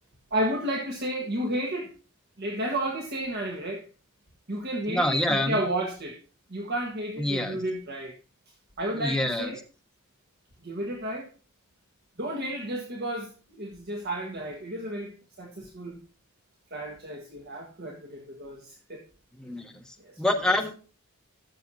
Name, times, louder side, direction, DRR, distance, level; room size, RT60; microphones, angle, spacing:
voice 1, 0.3-1.9 2.4-3.8 4.5-6.2 6.5-8.1 8.8-9.6 10.6-11.3 12.2-16.0 16.7-19.0 20.0-20.2 20.5-20.6, right 1 dB, 50° right, 0 dB, 1.6 m, -32 dB
voice 2, 4.9-5.6 7.2-7.6 9.0-9.5 19.4-19.7 20.2-20.7, left 1 dB, 5° left, 2 dB, 1.3 m, -26 dB
14.5 x 6.9 x 2.8 m, 0.36 s
head